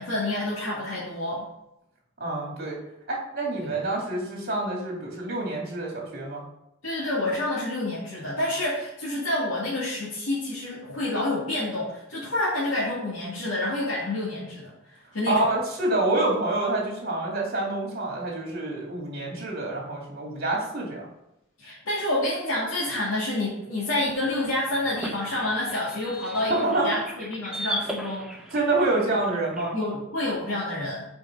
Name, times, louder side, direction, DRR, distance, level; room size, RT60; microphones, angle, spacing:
voice 1, 0.0-1.5 3.6-3.8 6.8-15.5 21.6-28.3 29.7-31.1, left 1 dB, 85° left, -8 dB, 2.1 m, -28 dB
voice 2, 2.2-2.8 3.1-6.4 15.3-21.0 26.5-26.9 28.5-29.7, right 2 dB, 50° right, -2 dB, 2.5 m, -27 dB
sound 1, 24.3-29.7, equal, 5° right, 0.7 m, -38 dB
6.4 x 5.1 x 5.3 m, 0.85 s
head